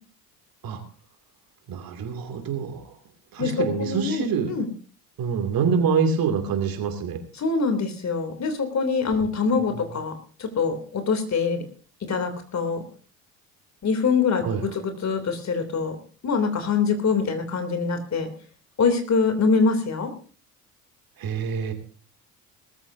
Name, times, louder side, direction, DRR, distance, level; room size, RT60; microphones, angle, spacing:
voice 1, 1.7-2.9 3.3-4.5 5.2-7.2 14.4-14.6 21.2-21.7, right 6 dB, 50° right, 7 dB, 2.7 m, -25 dB
voice 2, 3.4-4.7 7.4-10.1 10.4-11.6 12.1-12.8 13.8-16.0 16.2-18.3 18.8-20.1, left 5 dB, 35° left, 7 dB, 3.1 m, -24 dB
19.5 x 14.0 x 2.8 m, 0.40 s
figure-of-eight pair, 60°, 45 cm